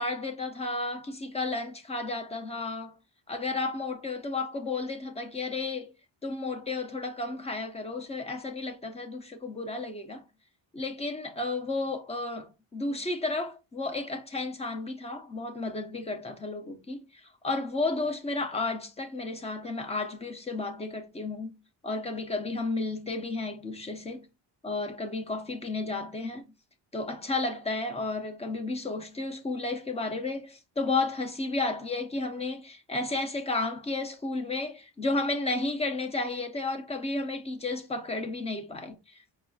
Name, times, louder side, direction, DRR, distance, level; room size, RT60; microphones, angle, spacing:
voice 1, 0.0-2.9 3.3-5.9 6.2-10.2 10.7-21.5 21.8-24.3 24.6-26.5 26.9-39.2, left 3 dB, 15° left, 0.4 m, -32 dB
4.9 x 2.6 x 2.3 m
wide cardioid pair, 170°, 46 cm